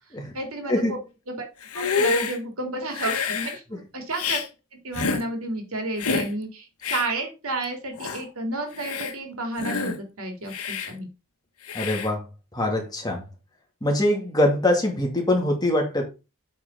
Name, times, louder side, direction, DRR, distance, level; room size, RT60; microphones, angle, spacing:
voice 1, 0.3-1.0 1.3-1.4 1.7-4.4 4.7-11.1, right 2 dB, 80° right, 4 dB, 2.5 m, -31 dB
Hiss, 1.6-2.4 2.9-3.6 4.1-4.5 4.9-5.2 6.0-6.3 6.8-7.1 7.6-7.7 8.0-8.2 8.7-9.1 9.6-10.0 10.5-10.9 11.7-12.1, left 5 dB, 85° left, 1.0 m, -27 dB
voice 2, 11.7-12.2 12.5-13.2 13.8-16.0, left 1 dB, 20° left, 1 dB, 2.3 m, -23 dB
8.2 x 4.2 x 5.1 m, 0.29 s
head